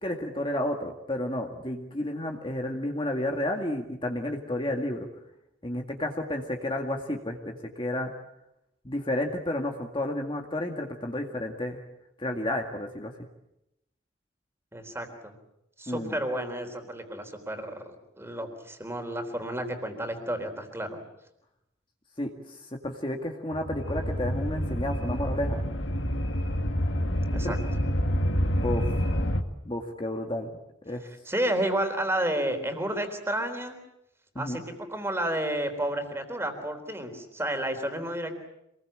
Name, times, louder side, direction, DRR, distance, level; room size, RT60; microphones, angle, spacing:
voice 1, 0.0-5.1 5.6-8.1 8.8-11.8 12.2-13.1 15.9-16.2 22.2-22.6 22.8-25.6 27.4-27.5 28.6-28.8 29.6-30.5 30.9-31.0 34.4-34.6, left 1 dB, 25° left, 3 dB, 2.0 m, -31 dB
voice 2, 14.7-15.3 15.8-21.0 27.3-27.6 31.0-33.8 34.4-38.3, right 1 dB, 15° right, 6 dB, 3.8 m, -31 dB
sound 1, 23.5-29.4, equal, 80° left, 2.1 m, -28 dB
27.0 x 21.5 x 8.8 m, 0.85 s
head